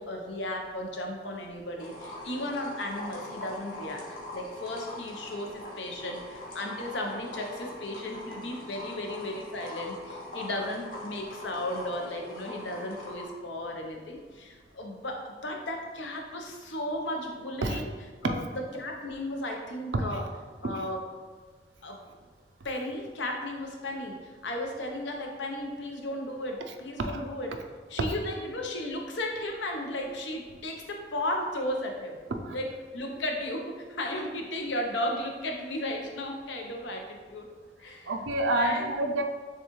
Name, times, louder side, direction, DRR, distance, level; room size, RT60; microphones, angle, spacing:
voice 1, 0.0-4.0 4.3-17.9 18.2-18.4 18.7-20.2 20.6-21.0 21.8-22.0 22.6-27.5 27.9-32.2 32.5-37.5 37.8-38.1 38.5-38.9, left 1 dB, 80° left, 2 dB, 0.7 m, -35 dB
sound 1, 1.8-13.2, left 1 dB, 50° left, 0.9 m, -42 dB
voice 2, 38.1-39.2, right 2 dB, 80° right, 5 dB, 0.5 m, -28 dB
6.8 x 2.3 x 3.0 m, 1.4 s
head